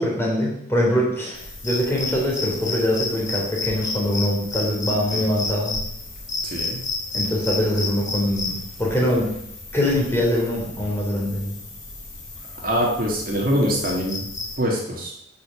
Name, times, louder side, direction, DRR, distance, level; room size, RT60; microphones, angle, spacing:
voice 1, 0.0-5.8 7.1-9.3 9.7-11.5, left 1 dB, 10° left, -4 dB, 3.2 m, -23 dB
sound 1, 1.3-14.6, left 3 dB, 40° left, 4.8 m, -32 dB
voice 2, 6.4-6.8 12.6-14.3 14.6-15.1, equal, 45° right, -1 dB, 1.9 m, -23 dB
8.2 x 6.7 x 7.0 m, 0.78 s
head